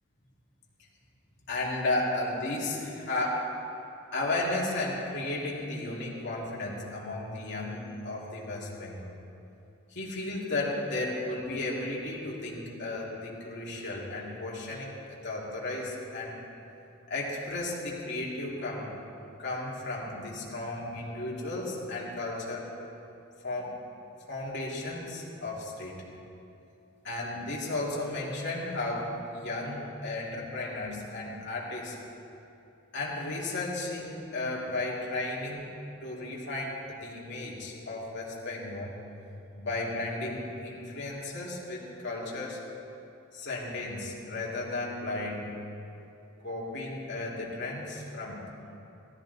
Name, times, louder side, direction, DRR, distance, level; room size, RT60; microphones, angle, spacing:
voice 1, 1.5-3.5 4.1-9.1 9.9-16.4 17.1-18.9 19.4-22.7 23.4-23.8 24.3-26.0 27.0-31.9 32.9-35.7 36.0-38.9 39.5-42.6 43.3-45.6 46.4-48.4, left 2 dB, 55° left, -4 dB, 2.6 m, -34 dB
16.5 x 13.5 x 4.1 m, 2.7 s
head